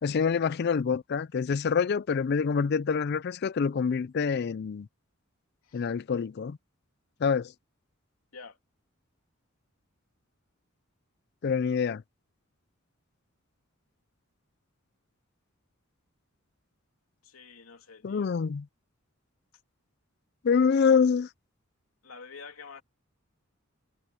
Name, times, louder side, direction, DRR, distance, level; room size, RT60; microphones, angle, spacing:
voice 1, 0.0-4.9 5.7-6.6 7.2-7.5 11.4-12.0 18.0-18.7 20.4-21.3, left 6 dB, 50° left, 0.4 m, -26 dB
voice 2, 17.2-18.3 22.0-22.8, left 5 dB, 90° left, 3.0 m, -47 dB
head